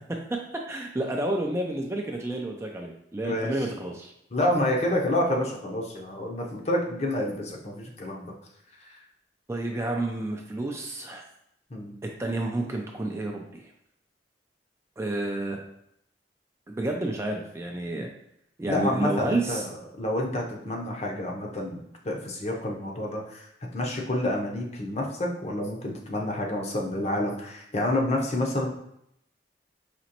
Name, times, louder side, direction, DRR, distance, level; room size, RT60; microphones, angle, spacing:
voice 1, 0.7-4.1 9.5-11.2 12.2-13.7 15.0-15.6 16.7-18.1 18.6-19.6, right 2 dB, 15° right, 1 dB, 0.4 m, -30 dB
voice 2, 4.3-8.3 8.9-9.0 11.7-11.9 18.7-23.5 23.7-28.7, left 1 dB, 35° left, 0 dB, 0.7 m, -28 dB
5.1 x 3.0 x 2.9 m, 0.76 s
head